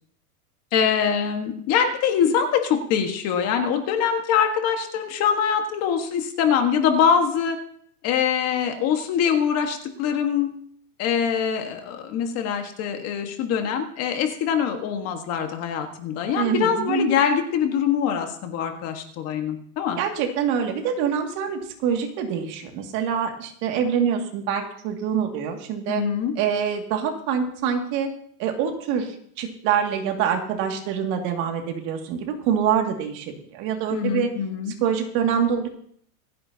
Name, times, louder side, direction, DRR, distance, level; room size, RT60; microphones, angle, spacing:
voice 1, 0.7-7.6 8.0-10.5 11.0-20.0 25.9-26.3 33.9-34.7, left 7 dB, 35° left, 5 dB, 1.6 m, -23 dB
voice 2, 16.4-17.1 20.0-26.0 26.4-28.1 28.4-34.3 34.8-35.7, right 7 dB, 40° right, 3 dB, 2.3 m, -25 dB
27.0 x 9.6 x 2.9 m, 0.62 s
supercardioid pair, 155°, 46 cm